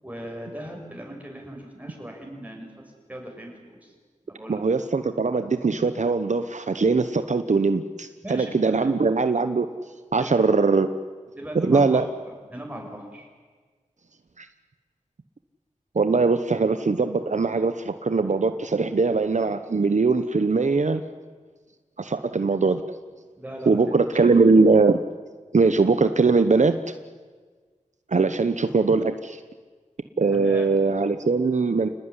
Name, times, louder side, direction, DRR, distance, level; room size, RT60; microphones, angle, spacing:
voice 1, 0.0-2.7 3.1-3.9 4.3-4.6 8.2-9.0 10.2-10.4 11.3-12.1 12.5-13.3 23.4-23.8 24.1-24.2 30.3-30.7, right 1 dB, 10° right, 0 dB, 7.7 m, -38 dB
voice 2, 4.5-9.7 10.1-10.9 11.5-12.0 14.4-14.5 15.9-21.0 22.0-22.8 23.7-25.0 25.5-26.9 28.1-29.4 30.2-31.9, right 4 dB, 65° right, 9 dB, 1.0 m, -21 dB
28.5 x 19.5 x 9.9 m, 1.5 s
wide cardioid pair, 65°, 13 cm